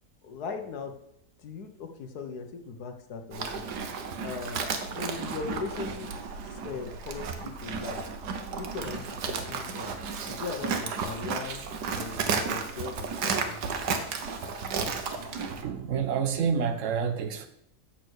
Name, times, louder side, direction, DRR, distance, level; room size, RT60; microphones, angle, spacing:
voice 1, 0.2-1.0 1.4-3.7 4.2-4.7 4.9-6.1 6.5-8.0 8.5-9.9 10.2-13.6, left 5 dB, 70° left, 1.5 m, -39 dB
Livestock farm animals working animals, 3.3-15.6, right 5 dB, 80° right, 1.6 m, -33 dB
voice 2, 15.6-17.5, right 6 dB, 55° right, 1.2 m, -28 dB
7.5 x 6.6 x 6.3 m
omnidirectional pair, 1.7 m